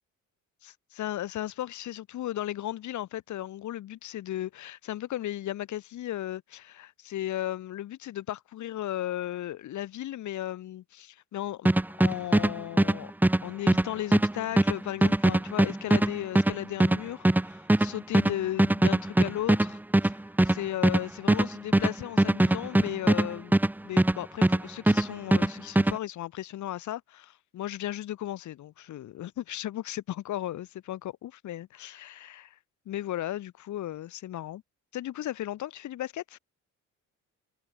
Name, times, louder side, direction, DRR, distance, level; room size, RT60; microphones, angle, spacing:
voice 1, 0.6-11.7 12.0-13.1 13.4-23.6 23.8-32.5 32.8-34.6 34.9-36.4, left 13 dB, 75° left, 1.6 m, -35 dB
sound 1, 11.7-24.6 24.9-26.0, right 1 dB, 5° right, 0.6 m, -22 dB
cardioid pair, 90°, 30 cm